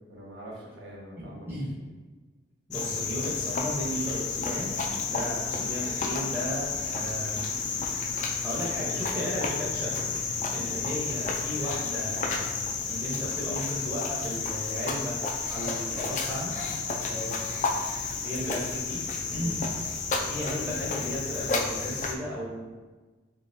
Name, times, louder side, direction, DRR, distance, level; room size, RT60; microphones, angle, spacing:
voice 1, 0.1-1.5 1.8-1.9 17.0-17.6 19.3-19.5, equal, 80° right, -5 dB, 1.0 m, -42 dB
voice 2, 1.2-1.7 2.7-7.5 8.0-8.1 8.4-10.0 10.5-12.6 12.9-16.5 18.2-19.0 19.3-19.6 20.0-22.7, equal, 10° right, -7 dB, 0.7 m, -35 dB
Cricket, 2.7-22.1, left 4 dB, 40° left, 0.3 m, -31 dB
3.8 x 3.0 x 2.6 m, 1.3 s
head